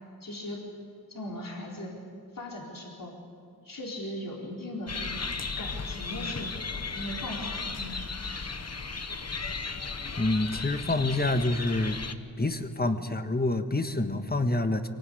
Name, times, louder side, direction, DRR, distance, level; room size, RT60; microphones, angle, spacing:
voice 1, 0.2-0.7 1.1-1.9 2.3-3.1 3.6-7.9 8.3-8.4 14.2-14.3, left 1 dB, 60° left, -2 dB, 4.2 m, -39 dB
sound 1, 4.9-12.1, left 4 dB, 45° left, 1.2 m, -35 dB
voice 2, 10.2-12.0 12.4-14.9, left 2 dB, 25° left, 8 dB, 1.5 m, -27 dB
24.0 x 18.5 x 8.6 m, 2.3 s
cardioid pair, 55°, 37 cm